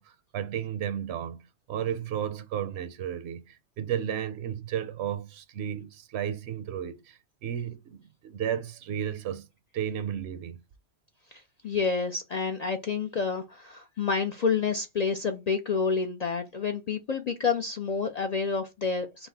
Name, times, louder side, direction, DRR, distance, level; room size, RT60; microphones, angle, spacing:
voice 1, 0.0-9.5 9.7-10.6, right 9 dB, 70° right, 0.8 m, -33 dB
voice 2, 11.3-19.3, left 5 dB, 55° left, 0.4 m, -29 dB
5.5 x 2.0 x 4.0 m
omnidirectional pair, 1.2 m